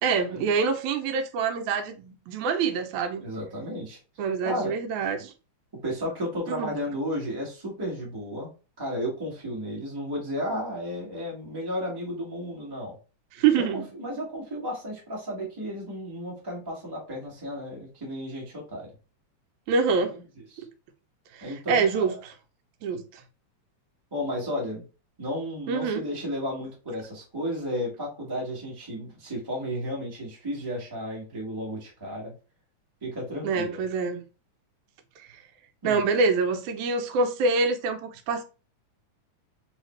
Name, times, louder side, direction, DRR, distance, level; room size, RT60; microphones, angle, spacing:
voice 1, 0.0-3.2 4.2-5.3 6.5-6.7 13.3-13.9 19.7-20.2 20.6-20.7 21.3-22.3 22.8-23.2 25.7-26.0 33.4-34.2 35.3-35.4 35.8-38.4, right 5 dB, 90° right, 2.0 m, -26 dB
voice 2, 3.2-4.0 4.4-4.7 5.8-8.5 8.8-13.0 13.5-18.9 19.9-20.0 20.5-20.6 21.4-22.2 24.1-24.8 25.2-32.3 33.0-33.8 35.8-36.0, equal, 10° right, 1.0 m, -33 dB
4.1 x 3.2 x 3.1 m
omnidirectional pair, 3.3 m